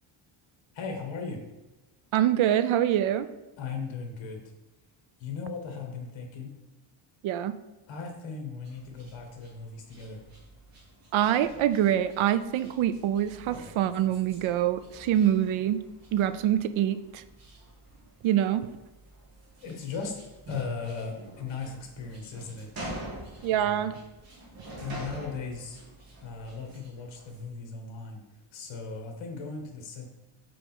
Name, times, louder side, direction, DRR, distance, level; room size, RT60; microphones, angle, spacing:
voice 1, 0.7-1.4 3.6-4.4 5.2-6.5 7.9-10.2 19.6-20.1 20.5-22.7 23.5-23.9 24.8-25.8 26.2-28.2 28.5-30.1, left 5 dB, 60° left, 2 dB, 1.7 m, -37 dB
voice 2, 2.1-3.3 7.2-7.6 11.1-15.8 16.1-17.2 18.2-18.7 23.4-23.9, right 11 dB, 70° right, 13 dB, 0.6 m, -25 dB
sound 1, 8.6-27.5, right 1 dB, 45° right, 2.1 m, -47 dB
5.0 x 5.0 x 6.1 m, 1.0 s
cardioid pair, 175°, 50 cm